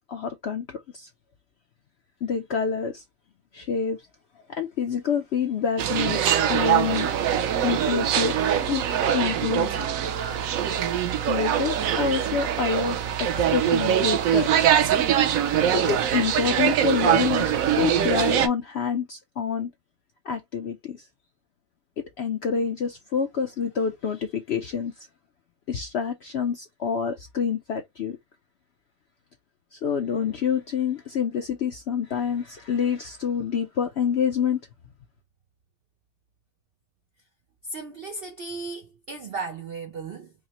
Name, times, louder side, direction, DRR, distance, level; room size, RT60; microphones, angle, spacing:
voice 1, 0.1-1.1 2.2-3.0 3.5-4.0 4.5-6.2 6.5-7.1 7.6-8.4 8.7-8.8 9.1-9.8 11.3-14.7 15.7-19.7 20.2-21.1 22.2-24.9 25.7-28.2 29.7-34.6, left 6 dB, 70° left, 0.6 m, -27 dB
sound 1, 5.8-18.5, right 9 dB, 65° right, 0.9 m, -23 dB
voice 2, 37.7-40.3, right 3 dB, 85° right, 0.5 m, -35 dB
4.9 x 2.0 x 2.9 m
omnidirectional pair, 1.8 m